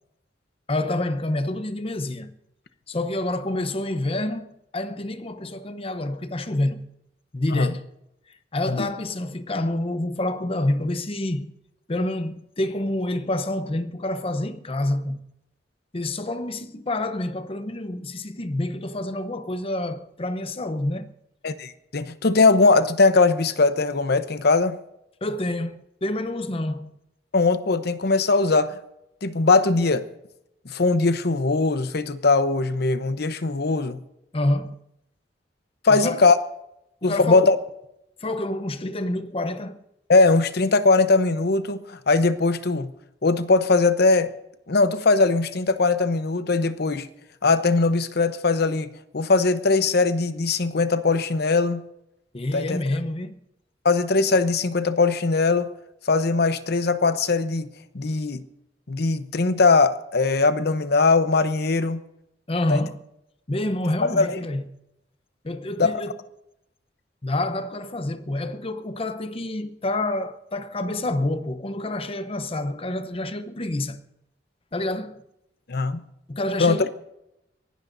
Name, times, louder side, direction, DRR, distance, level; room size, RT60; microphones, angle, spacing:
voice 1, 0.7-2.3 2.9-6.9 7.3-7.9 8.5-11.5 11.9-15.3 15.9-21.1 25.2-26.9 34.3-34.8 35.9-36.2 37.0-37.5 38.2-39.8 52.3-53.3 62.5-63.0 63.5-64.7 65.4-66.2 67.2-74.0 74.7-75.2 76.3-76.9, left 1 dB, 30° left, 0.8 m, -28 dB
voice 2, 21.4-24.8 27.3-28.8 29.2-30.0 30.6-34.0 35.8-36.4 37.0-37.6 40.1-42.9 43.2-44.3 44.7-47.1 47.4-51.8 52.5-52.8 53.8-55.7 56.1-57.7 57.9-58.4 58.9-62.0 62.7-62.9 64.0-64.4 65.8-65.9 75.7-76.0 76.6-76.8, left 3 dB, 60° left, 0.9 m, -20 dB
24.5 x 17.0 x 2.6 m
head